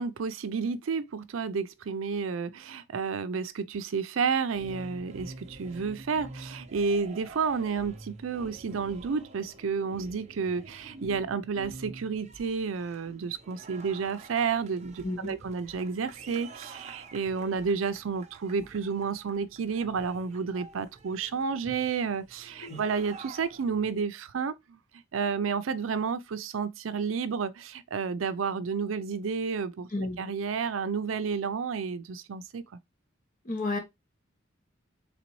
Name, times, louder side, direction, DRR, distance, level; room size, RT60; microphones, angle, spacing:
voice 1, 0.0-24.8 25.1-29.9 30.2-32.6, right 5 dB, 80° right, 0.5 m, -31 dB
sound 1, 4.4-24.0, right 3 dB, 35° right, 0.7 m, -48 dB
voice 2, 15.0-15.4 22.6-22.8 29.9-30.2 33.4-33.8, left 2 dB, 45° left, 1.0 m, -31 dB
4.0 x 3.4 x 3.0 m
head